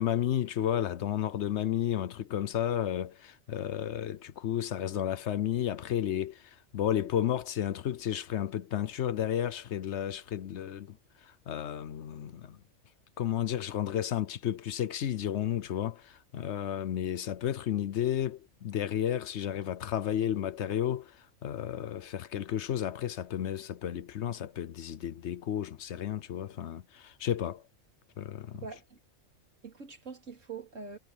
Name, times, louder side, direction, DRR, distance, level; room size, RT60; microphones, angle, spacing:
voice 1, 0.0-12.6 13.2-27.6 28.2-28.6, left 10 dB, 65° left, 1.0 m, -32 dB
voice 2, 28.5-29.0 29.6-31.0, right 5 dB, 80° right, 3.2 m, -43 dB
omnidirectional pair, 1.3 m